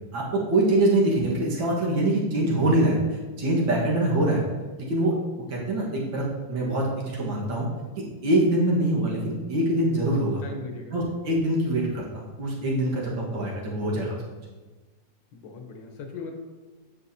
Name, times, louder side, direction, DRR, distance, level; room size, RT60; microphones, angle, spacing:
voice 1, 0.1-3.0 3.4-4.4 4.8-5.1 5.5-6.2 6.5-7.7 8.2-10.4 10.9-14.2, right 1 dB, 90° right, -4 dB, 2.3 m, -24 dB
voice 2, 10.4-11.0 15.3-16.4, left 4 dB, 80° left, 3 dB, 1.8 m, -38 dB
9.3 x 6.4 x 2.8 m, 1.3 s
omnidirectional pair, 2.0 m